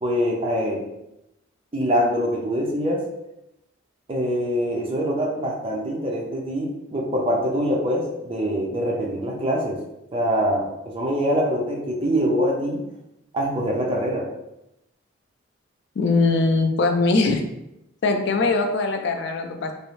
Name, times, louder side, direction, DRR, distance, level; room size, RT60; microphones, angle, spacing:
voice 1, 0.0-0.8 1.7-3.0 4.1-9.8 10.1-12.8 13.3-14.3, equal, 25° right, -2 dB, 0.5 m, -24 dB
voice 2, 16.0-17.4 18.0-19.7, left 3 dB, 55° left, 5 dB, 0.3 m, -21 dB
2.6 x 2.0 x 3.0 m, 0.87 s
head